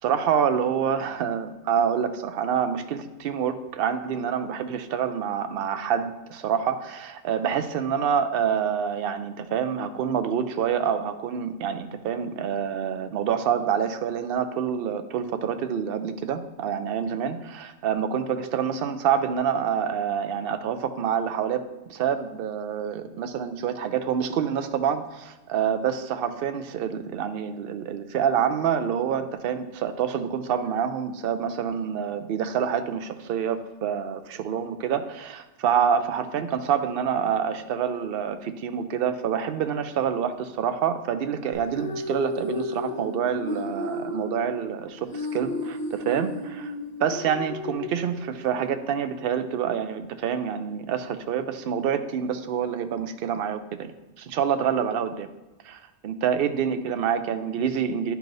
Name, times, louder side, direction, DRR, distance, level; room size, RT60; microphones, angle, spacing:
voice 1, 0.0-46.7 47.0-53.9 54.2-55.3 55.6-58.1, right 8 dB, 60° right, 9 dB, 0.7 m, -27 dB
sound 1, 41.5-48.6, left 2 dB, 10° left, 1.7 m, -33 dB
10.5 x 4.6 x 2.6 m, 1.1 s
omnidirectional pair, 1.3 m